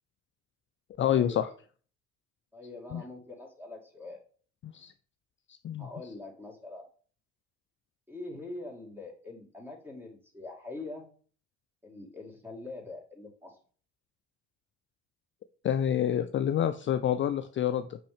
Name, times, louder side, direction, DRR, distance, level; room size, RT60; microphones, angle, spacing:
voice 1, 1.0-1.5 2.9-3.0 4.6-4.9 5.6-5.9 15.6-18.0, left 10 dB, 35° left, 10 dB, 0.4 m, -27 dB
voice 2, 2.5-4.2 5.8-6.8 8.1-11.1 11.8-13.6, left 2 dB, 5° right, 1 dB, 2.5 m, -43 dB
6.0 x 5.5 x 3.4 m, 0.43 s
hypercardioid pair, 60°, 33 cm